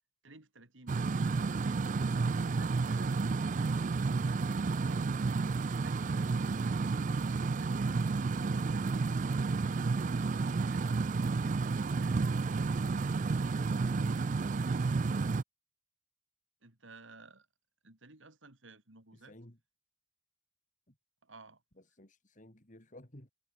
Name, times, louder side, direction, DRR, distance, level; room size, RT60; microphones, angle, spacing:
voice 1, 0.2-5.2 5.8-8.6 9.6-11.1 16.6-17.5 17.8-19.4 21.2-21.6, right 3 dB, 80° right, 3.3 m, -56 dB
sound 1, 0.9-15.4, right 4 dB, 40° right, 0.4 m, -31 dB
voice 2, 14.0-15.1 19.1-19.6 20.9-21.0 21.9-23.3, left 1 dB, 45° left, 4.1 m, -56 dB
head